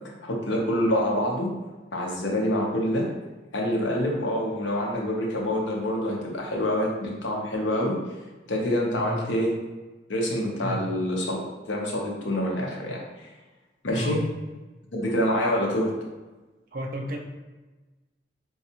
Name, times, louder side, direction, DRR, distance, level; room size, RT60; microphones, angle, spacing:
voice 1, 0.2-1.5 1.9-3.1 3.5-8.0 8.5-9.5 10.1-11.4 11.7-13.3 13.8-14.2 14.9-16.0, left 1 dB, 80° left, -2 dB, 0.8 m, -26 dB
voice 2, 8.9-9.3 10.6-10.9 13.9-14.2 16.7-17.2, right 1 dB, 50° right, 2 dB, 0.4 m, -33 dB
3.9 x 2.3 x 2.8 m, 1.2 s
head